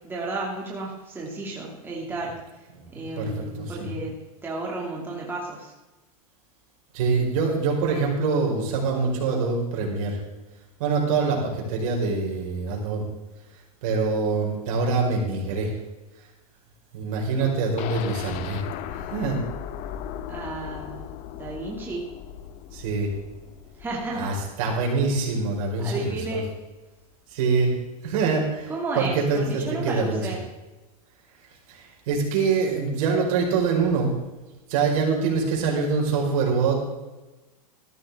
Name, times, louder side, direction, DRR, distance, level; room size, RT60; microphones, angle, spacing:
voice 1, 0.0-2.7 2.9-4.2 4.4-5.7 17.4-17.5 20.3-21.1 21.4-22.1 23.8-24.3 25.8-26.5 28.7-30.4, right 2 dB, 10° right, -3 dB, 2.4 m, -32 dB
voice 2, 2.7-4.0 6.9-10.2 10.8-13.0 13.8-15.7 16.9-18.7 18.9-19.4 22.7-23.1 24.1-26.4 27.3-27.7 28.0-30.2 31.7-34.1 34.7-36.8, right 4 dB, 60° right, -1 dB, 4.8 m, -25 dB
sound 1, 17.8-25.6 26.0-26.1 26.5-26.6, left 10 dB, 40° left, 0.8 m, -38 dB
14.0 x 13.0 x 3.6 m, 1.1 s
supercardioid pair, 145°, 20 cm